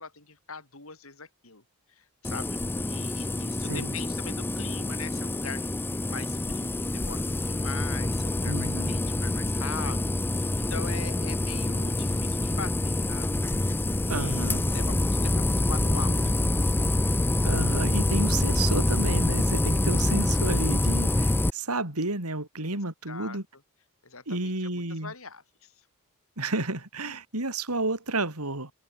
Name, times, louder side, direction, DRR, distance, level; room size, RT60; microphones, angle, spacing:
voice 1, 0.0-1.6 1.9-5.6 6.1-13.3 13.9-16.4 22.6-22.8 23.1-23.4 24.0-25.9 27.0-27.2, left 5 dB, 65° left, 4.9 m, -42 dB
sound 1, 2.2-21.5, left 1 dB, 10° left, 0.4 m, -26 dB
voice 2, 8.5-9.0 14.1-14.6 17.4-23.4 24.3-25.1 26.4-28.7, right 2 dB, 90° right, 4.7 m, -31 dB
head